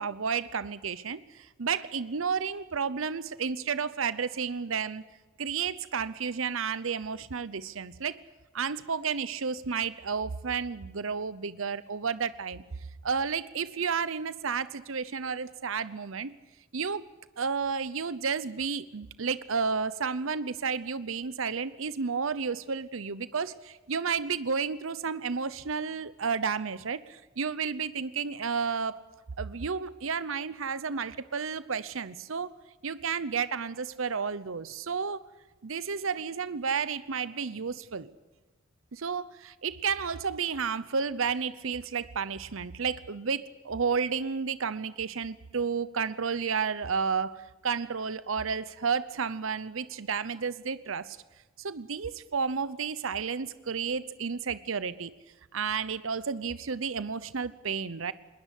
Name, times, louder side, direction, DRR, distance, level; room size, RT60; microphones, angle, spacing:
voice 1, 0.0-5.0 5.4-8.2 8.5-12.6 13.0-16.3 16.7-17.1 17.4-29.0 29.4-32.5 32.8-35.2 35.6-38.1 38.9-51.2 51.6-55.1 55.5-58.1, right 5 dB, 80° right, 16 dB, 0.8 m, -32 dB
21.0 x 19.5 x 8.3 m, 1.2 s
head